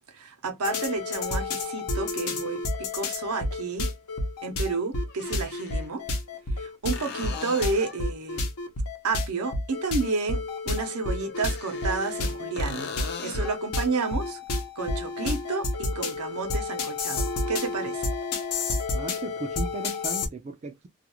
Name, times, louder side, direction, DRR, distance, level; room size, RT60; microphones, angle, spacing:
voice 1, 0.1-3.9 4.4-6.0 6.6-8.5 9.0-12.9 13.2-14.4 14.8-18.1, right 4 dB, 80° right, 0.7 m, -31 dB
sound 1, 0.6-20.3, left 2 dB, 85° left, 0.8 m, -30 dB
sound 2, 3.7-3.8 5.1-5.9 6.9-8.1 11.2-12.3 12.6-13.6 17.3-17.4, left 5 dB, 50° left, 0.5 m, -39 dB
voice 2, 18.9-20.9, right 3 dB, 30° right, 0.3 m, -36 dB
2.4 x 2.2 x 2.9 m
head